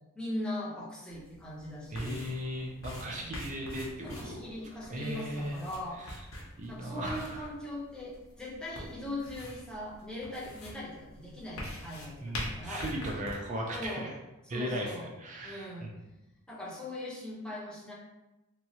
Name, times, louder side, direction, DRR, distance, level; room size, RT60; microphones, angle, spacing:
voice 1, 0.2-2.2 3.1-3.3 4.0-6.1 6.7-12.8 13.7-14.1 14.5-15.1 15.4-15.9 16.5-17.9, left 1 dB, 5° left, -6 dB, 0.7 m, -40 dB
sound 1, 1.1-13.3, left 1 dB, 65° left, 0.7 m, -44 dB
voice 2, 1.9-4.4 4.9-5.6 6.0-6.2 6.6-7.5 12.2-14.1 14.5-15.9, equal, 35° right, -1 dB, 0.4 m, -37 dB
3.0 x 2.3 x 2.8 m, 1.0 s
head